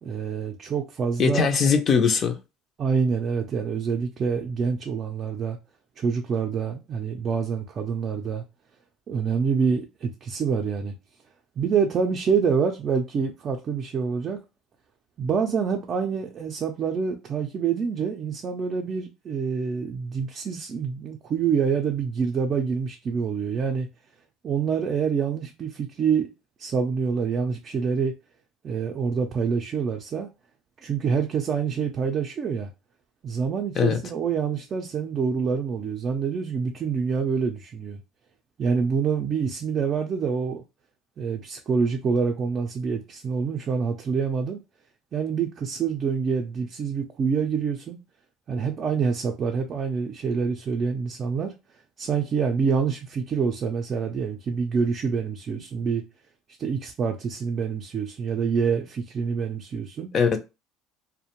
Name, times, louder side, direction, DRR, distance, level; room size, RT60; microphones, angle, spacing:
voice 1, 0.0-1.7 2.8-5.6 6.0-8.4 9.1-10.9 11.6-14.4 15.2-23.9 24.4-26.3 26.6-28.1 28.6-30.3 30.8-32.7 33.2-38.0 38.6-40.6 41.2-44.6 45.1-48.0 48.5-51.5 52.0-56.0 56.6-60.1, right 6 dB, 40° right, 0.4 m, -26 dB
voice 2, 1.2-2.4 33.8-34.0 60.1-60.4, left 6 dB, 40° left, 0.4 m, -21 dB
2.5 x 2.1 x 2.9 m
supercardioid pair, 115°, 0 cm